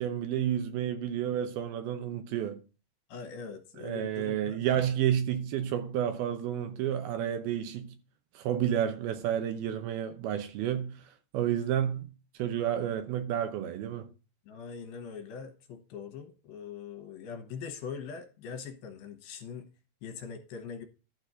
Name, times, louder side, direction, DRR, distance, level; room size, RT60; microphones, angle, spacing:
voice 1, 0.0-2.6 3.8-7.9 8.4-11.0 11.3-12.1 12.4-14.1, right 10 dB, 75° right, 2.7 m, -30 dB
voice 2, 3.1-4.6 14.5-19.7 20.0-20.9, left 6 dB, 70° left, 2.8 m, -42 dB
12.0 x 4.1 x 6.3 m
omnidirectional pair, 4.6 m